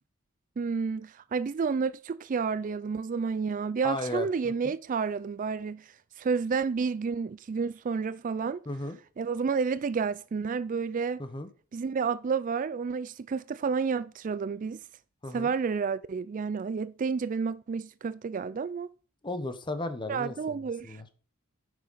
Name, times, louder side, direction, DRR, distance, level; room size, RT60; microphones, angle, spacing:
voice 1, 0.6-5.9 6.2-8.6 9.2-11.2 11.7-14.8 15.3-18.9 20.1-21.0, right 5 dB, 40° right, 0.3 m, -30 dB
voice 2, 3.8-4.7 8.7-9.0 11.2-11.5 15.2-15.5 19.2-21.1, left 2 dB, 20° left, 1.1 m, -35 dB
9.4 x 6.3 x 5.6 m
head